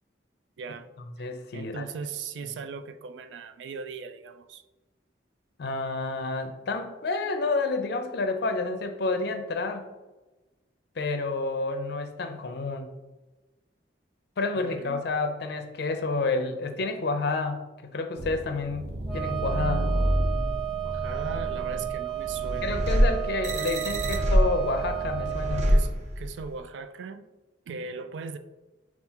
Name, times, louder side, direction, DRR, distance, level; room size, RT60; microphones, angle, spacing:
voice 1, 0.6-0.9 1.2-1.3 1.5-4.6 14.6-15.0 20.8-22.9 25.7-27.3 27.7-28.4, right 5 dB, 90° right, 9 dB, 0.3 m, -39 dB
voice 2, 1.2-1.9 5.6-9.9 11.0-12.9 14.4-19.9 22.6-25.7, left 3 dB, 65° left, 6 dB, 0.5 m, -29 dB
sound 1, 18.2-26.5, equal, 40° right, 0.5 m, -27 dB
Wind instrument woodwind instrument, 19.1-25.8, right 14 dB, 5° left, 0.9 m, -33 dB
5.6 x 2.4 x 2.8 m, 1.1 s
head